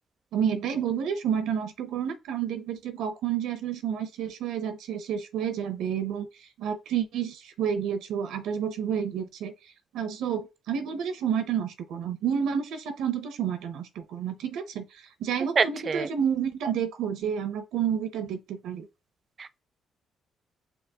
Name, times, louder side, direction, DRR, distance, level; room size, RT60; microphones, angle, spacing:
voice 1, 0.3-6.3 6.6-9.5 9.9-14.8 15.2-18.9, right 8 dB, 85° right, 0.6 m, -30 dB
voice 2, 15.6-16.1 19.4-19.6, right 5 dB, 40° right, 0.4 m, -26 dB
5.4 x 2.8 x 2.8 m
cardioid pair, 90°, 0 cm